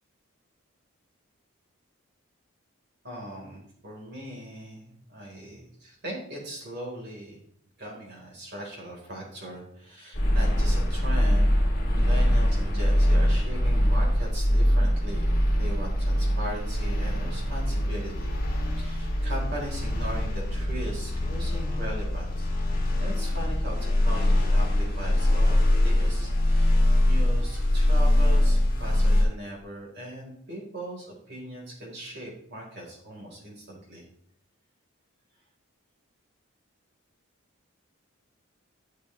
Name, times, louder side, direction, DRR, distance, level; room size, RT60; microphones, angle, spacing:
voice 1, 3.0-7.4 7.8-11.5 11.8-18.3 18.6-22.5 23.0-25.6 25.8-34.1, right 1 dB, 50° right, -3 dB, 4.0 m, -39 dB
sound 1, 10.1-29.2, left 1 dB, 45° left, 2.7 m, -23 dB
12.0 x 6.8 x 3.2 m, 0.68 s
head